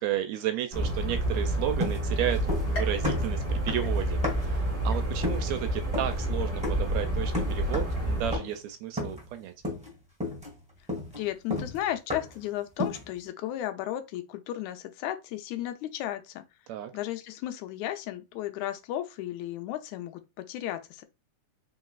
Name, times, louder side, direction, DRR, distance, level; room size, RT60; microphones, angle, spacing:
voice 1, 0.0-9.5 16.7-16.9, right 11 dB, 80° right, 1.7 m, -33 dB
sound 1, 0.7-8.4, right 1 dB, 20° right, 1.5 m, -29 dB
sound 2, 1.8-2.8 3.0-4.6 5.2-5.5 5.9-6.2 6.6-6.9 7.3-8.0 8.3-8.6 9.0-9.3 9.6-9.9 10.2-12.4 12.8-13.1, left 1 dB, 5° right, 1.2 m, -33 dB
sound 3, 2.7-4.5 4.9-5.5 6.0-6.1 7.1-7.2, left 3 dB, 50° left, 1.4 m, -43 dB
voice 2, 11.1-16.4 16.9-21.0, left 13 dB, 80° left, 2.0 m, -34 dB
4.2 x 3.8 x 2.4 m
omnidirectional pair, 3.3 m